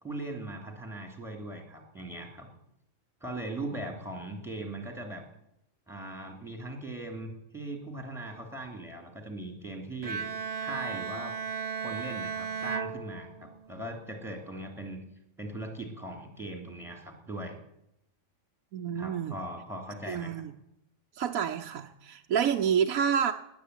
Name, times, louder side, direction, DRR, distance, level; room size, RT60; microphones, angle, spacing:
voice 1, 0.0-2.5 3.2-5.2 5.9-10.2 10.6-11.3 11.8-15.0 15.4-17.6 18.9-20.4, right 1 dB, ahead, 3 dB, 3.0 m, -39 dB
Bowed string instrument, 10.0-13.8, right 6 dB, 35° right, 0.6 m, -35 dB
voice 2, 18.7-19.3 20.1-20.5 21.1-23.3, right 8 dB, 80° right, 4 dB, 1.2 m, -28 dB
19.0 x 8.9 x 8.3 m, 0.83 s
omnidirectional pair, 1.5 m